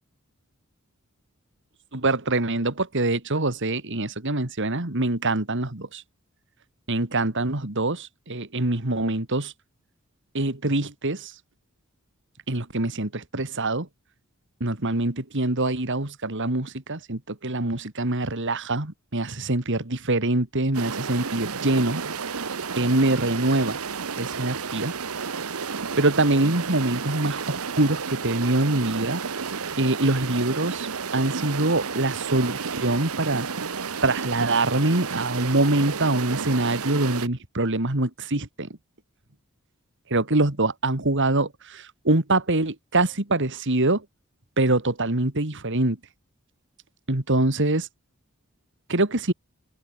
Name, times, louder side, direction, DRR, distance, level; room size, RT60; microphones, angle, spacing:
voice 1, 1.9-6.0 6.9-9.5 10.3-11.3 12.5-13.9 14.6-22.0 22.8-23.8 24.2-24.9 26.0-29.2 29.8-30.9 31.1-33.5 34.0-38.7 40.1-44.0 44.6-46.0 47.1-47.9 48.9-49.3, right 2 dB, 60° right, 2.5 m, -24 dB
sound 1, 20.7-37.3, right 5 dB, 85° right, 1.2 m, -32 dB
head